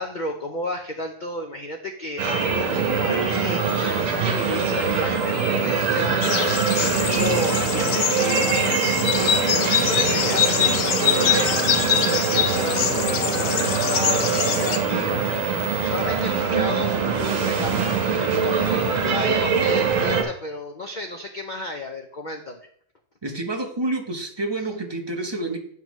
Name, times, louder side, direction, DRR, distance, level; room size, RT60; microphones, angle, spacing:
voice 1, 0.0-8.9 9.5-15.4 15.8-16.9 17.3-18.0 18.4-22.6, left 1 dB, 80° left, 4 dB, 0.4 m, -32 dB
sound 1, 2.2-20.2, right 5 dB, 55° right, 1.4 m, -23 dB
sound 2, 6.2-14.8, left 8 dB, 65° left, 1.0 m, -24 dB
voice 2, 23.2-25.6, right 2 dB, 30° right, 3 dB, 0.5 m, -28 dB
8.8 x 5.7 x 3.0 m, 0.63 s
omnidirectional pair, 1.7 m